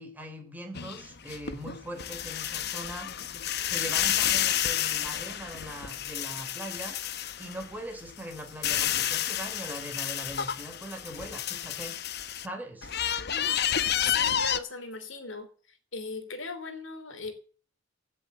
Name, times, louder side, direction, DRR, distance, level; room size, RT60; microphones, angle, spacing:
voice 1, 0.0-3.1 3.4-12.0 12.4-12.9, right 1 dB, 10° right, 4.1 m, -41 dB
sound 1, 0.8-7.7 8.1-12.5 12.8-14.6, left 10 dB, 55° left, 1.0 m, -30 dB
voice 2, 14.1-15.5 15.9-17.3, left 3 dB, 75° left, 3.1 m, -38 dB
16.5 x 7.4 x 7.7 m
head